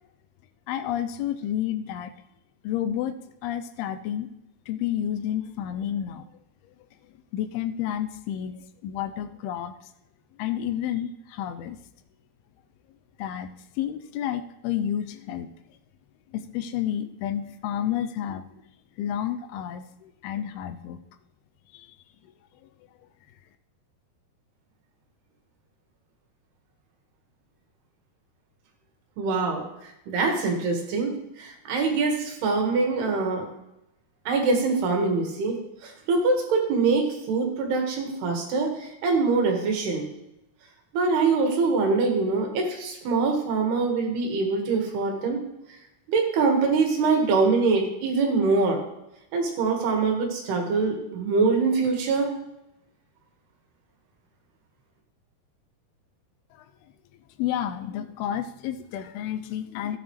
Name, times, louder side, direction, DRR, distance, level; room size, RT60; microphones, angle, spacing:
voice 1, 0.7-2.1 2.6-3.1 3.4-4.3 4.7-6.3 7.3-9.7 10.4-11.8 13.2-13.5 13.8-15.5 16.3-18.6 19.0-21.0 21.7-21.9 56.5-56.7 57.4-60.0, left 10 dB, 80° left, 8 dB, 2.5 m, -30 dB
voice 2, 29.2-33.5 34.3-35.6 35.8-40.1 40.9-45.4 46.1-48.8 49.3-52.3, right 4 dB, 75° right, 2 dB, 3.7 m, -24 dB
13.0 x 9.1 x 3.2 m, 0.86 s
omnidirectional pair, 4.7 m